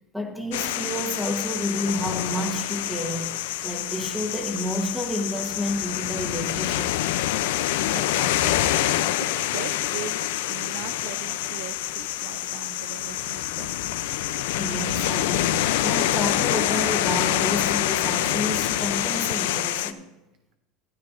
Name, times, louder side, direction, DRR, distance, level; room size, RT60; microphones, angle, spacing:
voice 1, 0.1-6.9 14.6-20.0, equal, ahead, 3 dB, 1.1 m, -30 dB
sound 1, 0.5-19.9, left 13 dB, 80° left, 0.5 m, -26 dB
voice 2, 7.9-8.7 9.2-13.7, right 11 dB, 60° right, 8 dB, 0.6 m, -40 dB
14.5 x 12.5 x 2.6 m, 0.99 s
supercardioid pair, 165°, 0 cm